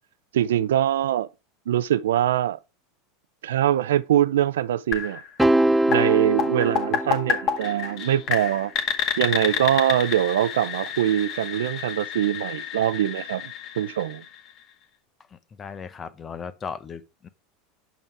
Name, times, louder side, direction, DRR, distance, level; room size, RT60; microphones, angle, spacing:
voice 1, 0.3-1.3 1.7-2.6 3.4-5.2 5.9-8.7 9.2-14.2, right 11 dB, 85° right, 0.5 m, -23 dB
sound 1, 4.9-14.7, left 8 dB, 50° left, 1.7 m, -30 dB
sound 2, 5.4-7.8, right 1 dB, 5° right, 0.3 m, -23 dB
voice 2, 15.3-17.3, left 6 dB, 30° left, 1.0 m, -37 dB
7.3 x 5.5 x 4.7 m
hypercardioid pair, 100°, 0 cm